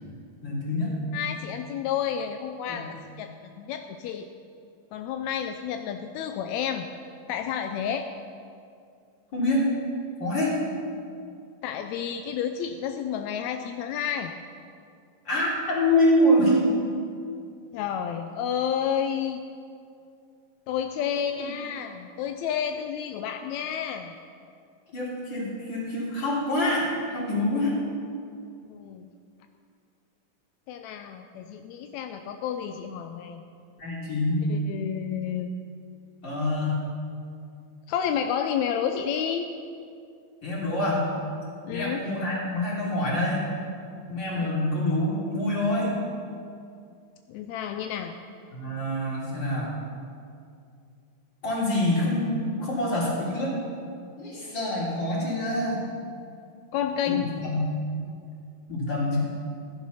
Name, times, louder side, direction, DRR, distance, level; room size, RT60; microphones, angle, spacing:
voice 1, 0.4-0.9 2.7-2.8 9.3-9.6 10.2-10.5 15.3-16.7 21.4-21.5 24.9-27.8 33.8-34.4 36.2-36.8 40.4-41.1 41.7-43.5 44.1-46.0 48.5-49.7 51.4-53.5 54.2-55.9 57.1-57.6 58.7-59.2, left 1 dB, 35° left, -5 dB, 3.9 m, -26 dB
voice 2, 1.1-4.3 4.9-6.9 7.3-8.1 11.6-14.3 17.7-19.4 20.7-24.1 28.7-29.1 30.7-33.4 34.5-35.5 37.9-39.5 41.7-42.0 44.3-44.6 47.3-48.2 56.7-57.3, left 8 dB, 80° left, 6 dB, 1.6 m, -30 dB
15.5 x 10.5 x 5.6 m, 2.4 s
omnidirectional pair, 3.7 m